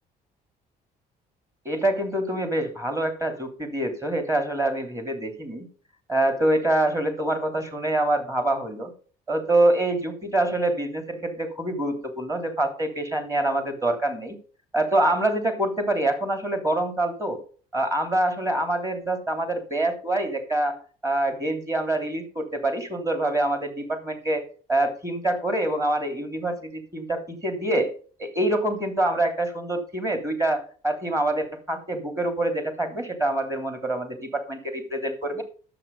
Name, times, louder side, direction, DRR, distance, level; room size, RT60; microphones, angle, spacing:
voice 1, 1.6-5.7 6.1-8.9 9.3-14.4 14.7-17.4 17.7-20.8 21.0-24.4 24.7-27.9 28.2-35.4, right 1 dB, 15° right, 6 dB, 3.0 m, -25 dB
9.8 x 7.8 x 5.4 m, 0.40 s
cardioid pair, 110°, 17 cm